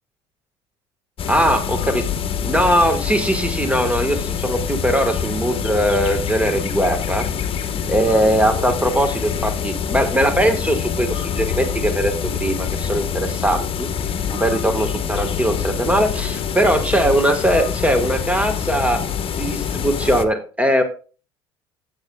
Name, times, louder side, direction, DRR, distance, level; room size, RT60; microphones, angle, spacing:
sound 1, 1.2-20.2, left 7 dB, 40° left, 1.2 m, -25 dB
voice 1, 1.3-2.0 2.4-7.3 7.9-12.1 12.4-13.9 14.3-19.0 19.4-20.8, right 1 dB, 10° right, 6 dB, 1.5 m, -20 dB
14.5 x 7.4 x 2.4 m, 0.36 s
hypercardioid pair, 75°, 14 cm